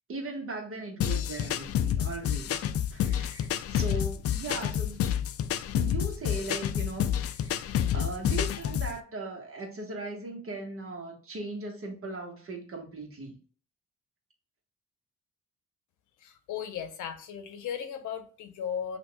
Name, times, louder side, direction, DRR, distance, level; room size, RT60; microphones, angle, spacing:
voice 1, 0.1-2.6 2.9-5.0 5.7-13.3, right 2 dB, 45° right, 1.4 m, -38 dB
sound 1, 1.0-9.0, left 10 dB, 50° left, 0.4 m, -29 dB
voice 2, 16.2-19.0, left 8 dB, 80° left, 0.9 m, -36 dB
5.6 x 2.5 x 2.2 m
cardioid pair, 90°, 30 cm